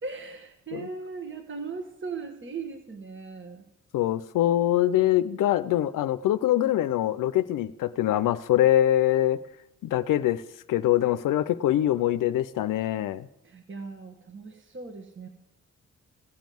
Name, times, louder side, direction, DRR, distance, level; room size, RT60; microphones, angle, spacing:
voice 1, 0.0-3.7 13.4-15.3, right 4 dB, 40° right, 5 dB, 1.4 m, -38 dB
voice 2, 3.9-9.4 9.8-10.4 10.7-13.3, left 12 dB, 85° left, 12 dB, 0.5 m, -24 dB
15.5 x 5.3 x 7.6 m, 0.87 s
cardioid pair, 65°, 31 cm